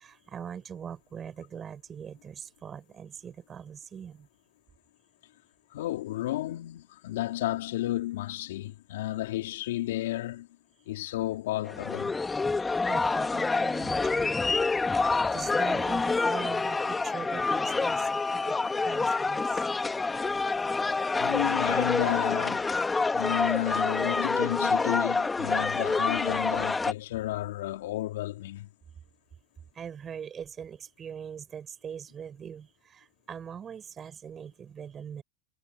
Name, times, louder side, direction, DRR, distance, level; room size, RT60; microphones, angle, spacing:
voice 1, 0.0-4.3 12.9-14.4 15.3-19.7 29.7-35.2, right 7 dB, 30° right, 7.6 m, -42 dB
voice 2, 5.7-10.5 10.9-12.2 21.2-22.7 23.1-28.7, left 15 dB, 75° left, 3.7 m, -32 dB
sound 1, 11.7-26.9, left 3 dB, 15° left, 2.3 m, -27 dB
hypercardioid pair, 100°, 0 cm